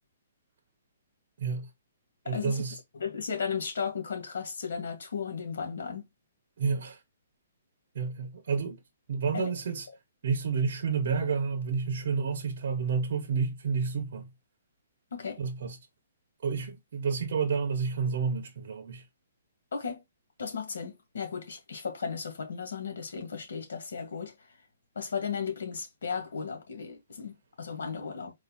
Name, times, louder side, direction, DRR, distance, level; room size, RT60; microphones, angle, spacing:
voice 1, 1.4-1.7 2.2-2.8 6.6-7.0 7.9-8.8 9.1-9.9 10.2-14.3 15.4-15.8 16.4-19.0, right 5 dB, 50° right, 0.9 m, -30 dB
voice 2, 2.3-2.6 3.0-6.1 9.3-9.5 15.1-15.4 19.7-20.0 20.4-24.5 25.0-28.3, left 6 dB, 70° left, 2.0 m, -35 dB
4.2 x 2.6 x 3.9 m
hypercardioid pair, 175°, 0 cm